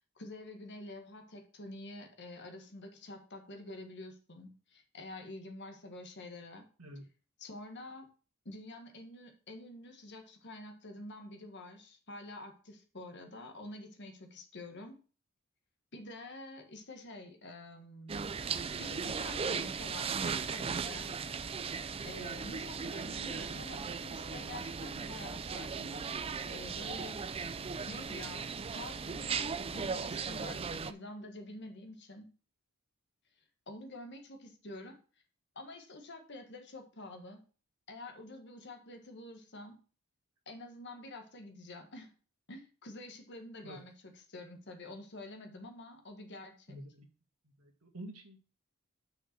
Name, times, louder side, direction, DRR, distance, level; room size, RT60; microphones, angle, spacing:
voice 1, 0.1-6.7 7.4-8.1 8.4-15.0 15.9-18.3 18.8-21.1 22.0-26.1 26.5-27.2 27.9-32.3 33.7-35.0 35.5-37.4 37.9-39.8 40.5-42.1 42.5-46.8, left 2 dB, 55° left, 5 dB, 1.6 m, -48 dB
sound 1, 18.1-30.9, right 5 dB, 25° right, 0.4 m, -37 dB
voice 2, 27.4-27.8 43.6-43.8 46.7-47.1 47.6-48.4, right 1 dB, 85° right, 4 dB, 1.8 m, -48 dB
6.2 x 5.1 x 6.6 m, 0.37 s
head